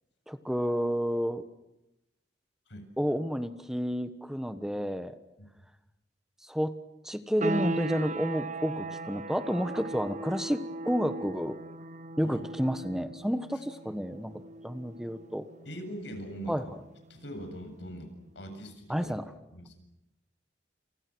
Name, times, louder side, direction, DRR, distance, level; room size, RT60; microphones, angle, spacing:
voice 1, 0.3-1.4 3.0-5.2 6.4-6.7 7.0-11.6 12.2-15.5 16.5-16.6 18.9-19.2, equal, 5° right, 9 dB, 1.3 m, -30 dB
sound 1, 7.4-17.9, right 2 dB, 40° right, 1.1 m, -39 dB
voice 2, 15.6-16.7 17.1-19.2 19.5-19.7, equal, 75° left, 6 dB, 7.6 m, -42 dB
30.0 x 29.0 x 6.3 m, 0.90 s
head